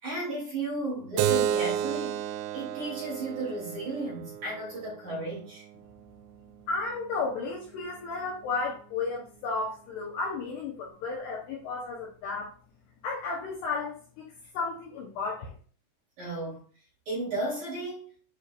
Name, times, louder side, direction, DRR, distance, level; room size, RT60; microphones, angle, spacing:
voice 1, 0.0-2.2 2.5-5.6 16.2-16.6 17.1-18.0, right 2 dB, 40° right, -5 dB, 4.1 m, -34 dB
Keyboard (musical), 1.2-6.3, right 10 dB, 85° right, 2.6 m, -32 dB
voice 2, 6.7-12.5 13.0-14.2 14.5-15.5, left 4 dB, 70° left, -2 dB, 2.7 m, -33 dB
9.4 x 4.9 x 2.5 m, 0.40 s
omnidirectional pair, 5.7 m